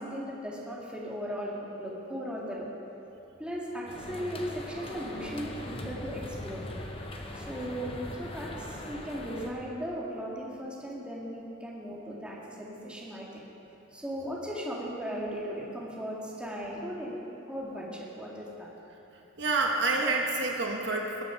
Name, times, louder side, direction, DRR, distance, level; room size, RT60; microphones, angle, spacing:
voice 1, 0.0-2.7 3.4-6.6 7.3-13.4 13.9-17.1 17.5-18.7, equal, 5° right, -5 dB, 1.8 m, -37 dB
sound 1, 3.9-9.5, left 1 dB, 30° left, 0.9 m, -40 dB
voice 2, 19.4-21.2, right 3 dB, 60° right, 0 dB, 1.2 m, -28 dB
20.0 x 7.1 x 5.7 m, 3.0 s
head